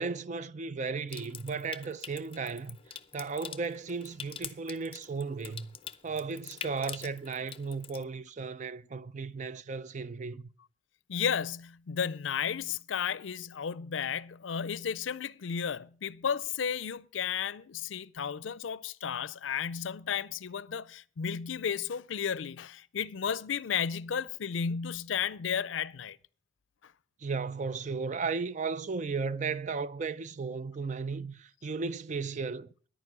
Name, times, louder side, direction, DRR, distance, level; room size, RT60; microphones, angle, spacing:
voice 1, 0.0-2.8 3.1-5.8 6.0-10.5 27.2-32.7, right 4 dB, 40° right, 0.4 m, -35 dB
Water tap faucet / Sink (filling or washing) / Trickle dribble, 1.1-8.0, left 8 dB, 30° left, 0.5 m, -46 dB
voice 2, 11.1-26.2 26.8-26.9, left 7 dB, 80° left, 0.5 m, -33 dB
10.0 x 9.3 x 6.1 m
head